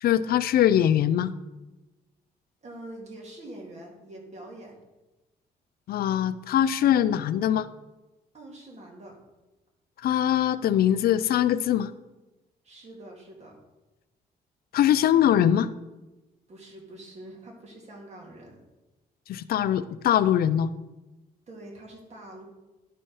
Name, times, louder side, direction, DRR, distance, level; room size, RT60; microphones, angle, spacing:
voice 1, 0.0-1.3 5.9-7.7 10.0-11.9 14.7-15.7 19.3-20.7, left 10 dB, 70° left, 14 dB, 0.4 m, -22 dB
voice 2, 2.6-4.8 8.3-9.2 12.6-13.6 16.5-18.6 21.5-22.5, right 1 dB, 45° right, 0 dB, 2.1 m, -45 dB
11.0 x 4.4 x 4.7 m, 1.1 s
cardioid pair, 110°, 16 cm